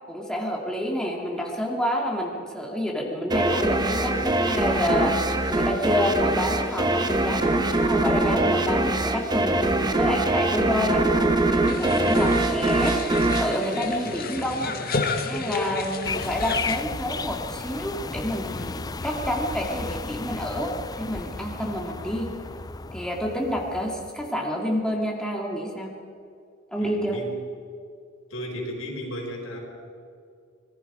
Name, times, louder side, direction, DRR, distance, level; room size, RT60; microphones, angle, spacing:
voice 1, 0.1-14.8 15.2-22.3 22.9-25.9 26.7-27.2, equal, 5° left, -1 dB, 2.4 m, -28 dB
sound 1, 3.3-14.6, right 2 dB, 20° right, 1.2 m, -23 dB
sound 2, 11.7-16.8, left 4 dB, 50° left, 1.6 m, -31 dB
sound 3, 16.0-24.3, left 4 dB, 20° left, 0.4 m, -34 dB
voice 2, 26.8-27.3 28.3-29.6, equal, 80° left, -1 dB, 5.4 m, -34 dB
25.5 x 20.5 x 5.0 m, 2.3 s
head